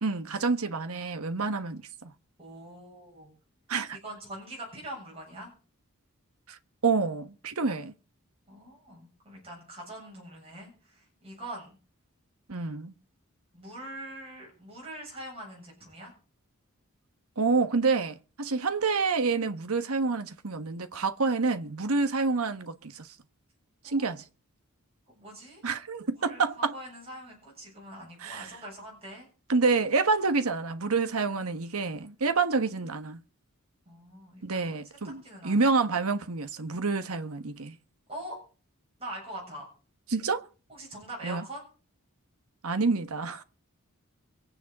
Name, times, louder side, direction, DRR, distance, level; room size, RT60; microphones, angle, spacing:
voice 1, 0.0-2.1 3.7-4.0 6.5-7.9 12.5-12.9 17.4-23.1 23.8-24.2 25.6-26.7 28.2-28.5 29.5-33.2 34.4-37.8 40.1-40.4 41.2-41.4 42.6-43.4, right 4 dB, 75° right, 1.2 m, -28 dB
voice 2, 2.4-3.3 4.0-5.5 8.5-11.8 13.5-16.1 23.8-24.0 25.1-25.6 26.1-29.3 33.9-34.8 35.0-35.6 38.1-38.4 39.0-39.7 40.7-41.6, right 1 dB, 25° right, 7.7 m, -43 dB
24.5 x 9.3 x 4.1 m
head